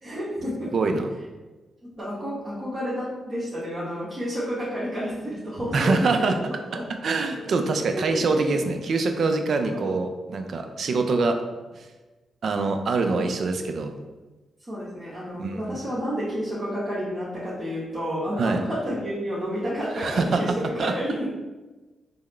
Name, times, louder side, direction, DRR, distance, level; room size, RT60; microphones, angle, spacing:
voice 1, 0.0-0.7 2.0-6.4 6.7-6.8 7.9-8.6 9.7-9.9 13.1-13.7 14.7-21.3, equal, 45° right, -10 dB, 1.2 m, -30 dB
voice 2, 0.7-1.1 5.7-6.4 7.0-11.4 12.4-13.9 15.4-15.8 18.4-18.6 19.9-20.4 20.8-20.9, right 3 dB, 65° right, 5 dB, 0.4 m, -24 dB
3.5 x 2.0 x 3.2 m, 1.2 s
supercardioid pair, 55°, 0 cm